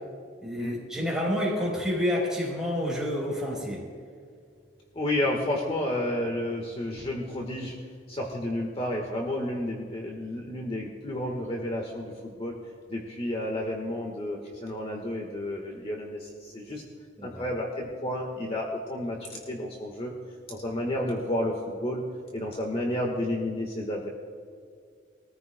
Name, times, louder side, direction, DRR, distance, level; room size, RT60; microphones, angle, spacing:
voice 1, 0.4-3.8 17.2-17.4, left 1 dB, 5° right, -3 dB, 3.8 m, -29 dB
voice 2, 4.9-7.7 8.1-12.5 12.9-16.8 17.2-20.1 20.5-22.0 22.3-24.1, left 1 dB, 35° left, 0 dB, 1.4 m, -31 dB
22.0 x 14.5 x 2.2 m, 2.2 s
head